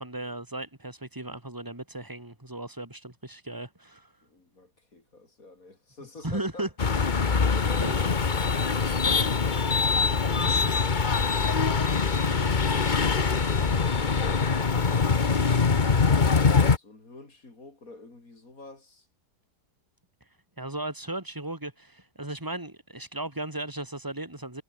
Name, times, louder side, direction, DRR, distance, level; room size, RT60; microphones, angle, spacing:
voice 1, 0.0-4.1 6.2-6.7 7.8-7.9 10.4-10.9 11.3-11.6 12.3-12.5 20.6-24.6, right 1 dB, 10° right, 3.4 m, -36 dB
voice 2, 4.2-6.7 16.8-19.1, left 2 dB, 50° left, 4.9 m, -49 dB
sound 1, 6.8-16.8, left 5 dB, 30° left, 1.1 m, -23 dB
omnidirectional pair, 1.9 m